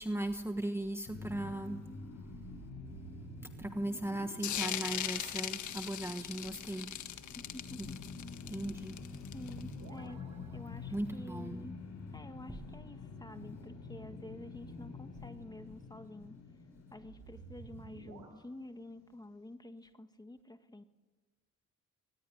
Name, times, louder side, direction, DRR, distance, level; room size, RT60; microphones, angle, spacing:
voice 1, 0.0-1.8 3.6-6.9 7.8-7.9 8.5-9.0 10.9-11.7, right 1 dB, 10° right, 7 dB, 1.3 m, -37 dB
sound 1, 1.1-18.2, left 4 dB, 60° left, 6.6 m, -48 dB
sound 2, 2.0-6.4 9.3-11.4 17.0-18.3, right 5 dB, 80° right, 6.1 m, -53 dB
sound 3, 4.4-9.7, left 11 dB, 75° left, 1.6 m, -39 dB
voice 2, 7.4-8.0 9.3-11.8 12.1-16.4 16.9-20.8, left 1 dB, 15° left, 8 dB, 1.8 m, -49 dB
22.0 x 20.0 x 9.9 m, 1.3 s
cardioid pair, 90°, 30 cm